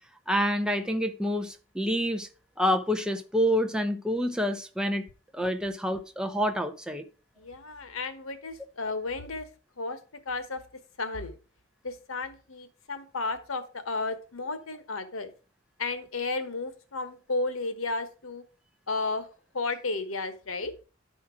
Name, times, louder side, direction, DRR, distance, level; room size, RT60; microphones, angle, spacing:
voice 1, 0.3-2.3 2.6-5.1 5.3-7.0, equal, 5° right, 0.8 m, -27 dB
voice 2, 7.4-9.5 9.8-10.0 10.2-10.6 11.0-11.4 11.8-15.3 15.8-18.4 18.9-19.3 19.5-20.7, left 3 dB, 90° left, 1.2 m, -33 dB
11.0 x 4.4 x 4.9 m
head